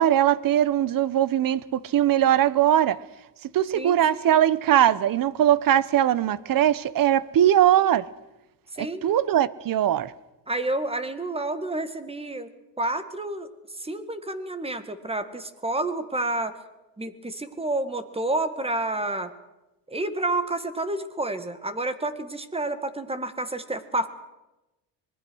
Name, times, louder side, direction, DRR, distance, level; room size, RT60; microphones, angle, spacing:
voice 1, 0.0-3.0 3.5-8.1 8.8-10.1, right 11 dB, 50° right, 20 dB, 0.9 m, -21 dB
voice 2, 3.7-4.4 8.8-9.1 10.5-12.5 12.8-13.5 13.8-16.6 17.0-19.3 19.9-24.1, right 2 dB, 15° right, 12 dB, 1.8 m, -29 dB
26.0 x 20.5 x 6.3 m, 1.0 s
cardioid pair, 120°, 45 cm